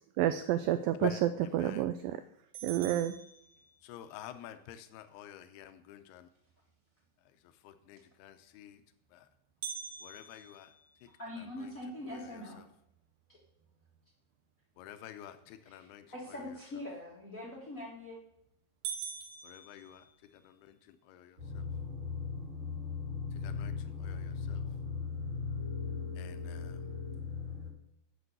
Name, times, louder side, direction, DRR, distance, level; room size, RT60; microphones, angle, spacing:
voice 1, 0.2-2.2 2.6-3.2, right 12 dB, 85° right, 10 dB, 2.0 m, -30 dB
voice 2, 1.0-1.8 3.8-6.3 7.6-8.8 9.1-9.3 10.0-10.7 11.0-11.1 11.6-11.7 12.1-12.2 14.8-16.1 16.3-16.4 19.4-20.1 20.3-21.7 23.3-24.6 26.2-26.8, left 11 dB, 85° left, 9 dB, 2.7 m, -47 dB
sound 1, 2.5-4.1 9.6-11.8 12.3-12.4 12.9-13.0 13.6-14.0 17.6-18.0 18.4-18.5 18.8-20.6, right 7 dB, 70° right, 2.0 m, -44 dB
voice 3, 11.2-12.6 13.3-13.4 15.6-18.2, left 1 dB, 70° left, -4 dB, 0.7 m, -43 dB
sound 2, 21.4-27.7, left 5 dB, 40° right, 2.2 m, -38 dB
8.3 x 6.3 x 7.8 m, 0.75 s
omnidirectional pair, 4.5 m